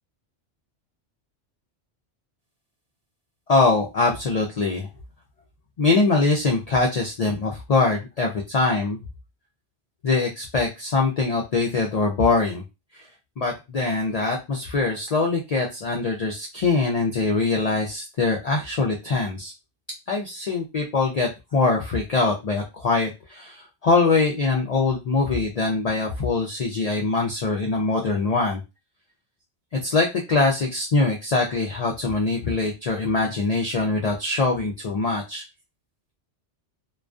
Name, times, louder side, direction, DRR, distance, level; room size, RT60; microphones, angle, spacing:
voice 1, 3.5-4.9 5.8-9.0 10.0-12.6 12.9-13.0 13.4-19.5 20.1-28.6 29.7-35.4, left 3 dB, 80° left, 0 dB, 0.3 m, -23 dB
2.3 x 2.2 x 2.4 m, 0.25 s
omnidirectional pair, 1.2 m